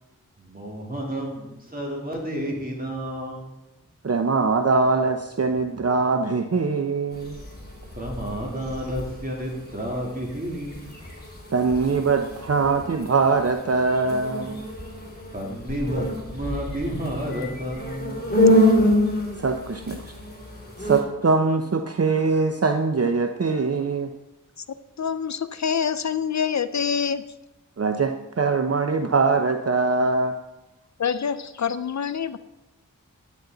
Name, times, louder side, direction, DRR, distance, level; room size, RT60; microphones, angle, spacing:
voice 1, 0.4-3.7 7.9-11.0 15.3-18.9, equal, 25° right, -2 dB, 3.1 m, -31 dB
voice 2, 4.0-7.4 11.5-14.6 19.4-20.1 20.8-24.1 27.8-30.3, right 4 dB, 50° right, 6 dB, 0.7 m, -22 dB
sound 1, 7.1-21.0, left 1 dB, 30° left, 2.8 m, -27 dB
voice 3, 25.0-27.2 31.0-32.4, left 7 dB, 60° left, 14 dB, 0.5 m, -26 dB
10.5 x 9.4 x 3.9 m, 0.97 s
wide cardioid pair, 45°, 32 cm